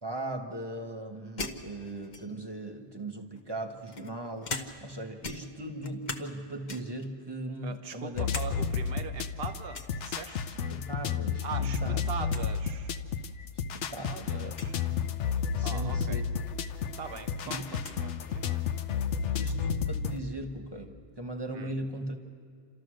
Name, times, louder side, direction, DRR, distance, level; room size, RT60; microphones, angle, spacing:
voice 1, 0.0-8.2 10.7-12.0 13.7-15.0 15.6-16.2 17.4-17.6 19.4-22.2, right 1 dB, 20° right, 4 dB, 1.3 m, -38 dB
sound 1, 1.4-2.5 3.4-5.0 5.2-6.4 6.7-7.1 7.5-8.5 8.8-8.9 9.7-10.0 11.4-11.8 12.0-12.1 12.3-12.5 13.3-13.4 14.5-14.7 16.4-16.5 16.9-18.0, left 3 dB, 40° left, 1.0 m, -40 dB
voice 2, 7.6-10.6 11.4-13.0 13.7-14.8 15.6-16.2 17.0-18.6 21.5-21.7, right 6 dB, 55° right, 8 dB, 1.2 m, -41 dB
sound 2, 8.2-20.2, left 6 dB, 70° left, 1.0 m, -32 dB
29.5 x 13.5 x 6.4 m, 2.2 s
omnidirectional pair, 1.3 m